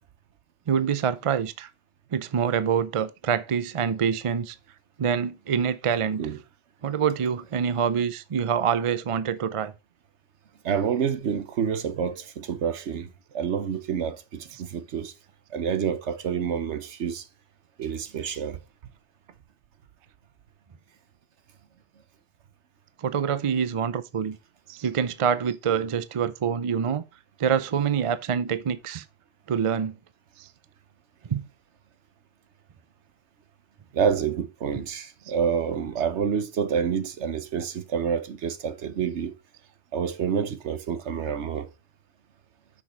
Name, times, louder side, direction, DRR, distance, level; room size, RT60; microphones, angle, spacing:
voice 1, 0.7-1.7 2.1-4.6 5.0-6.3 6.8-9.7 23.0-24.4 24.7-27.0 27.4-29.0 29.5-30.0 30.4-30.5 31.3-31.5, right 7 dB, 45° right, 0.4 m, -26 dB
voice 2, 10.6-13.1 13.3-15.1 15.5-17.3 17.8-18.6 33.9-39.3 39.9-41.7, right 7 dB, 70° right, 1.2 m, -28 dB
6.2 x 6.1 x 4.4 m
omnidirectional pair, 1.2 m